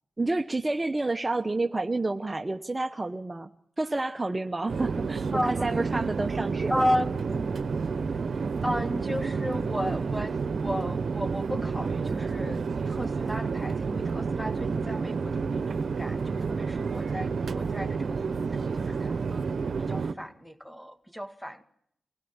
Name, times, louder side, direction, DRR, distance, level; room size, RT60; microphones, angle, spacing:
voice 1, 0.2-3.5 3.8-6.9, right 2 dB, 30° right, 0.9 m, -29 dB
Chatter / Fixed-wing aircraft airplane, 4.7-20.1, right 5 dB, 65° right, 1.1 m, -30 dB
voice 2, 5.3-6.1 6.7-7.4 8.6-19.4 19.8-21.6, equal, 5° left, 1.9 m, -34 dB
24.0 x 16.5 x 7.2 m
cardioid pair, 50°, 0 cm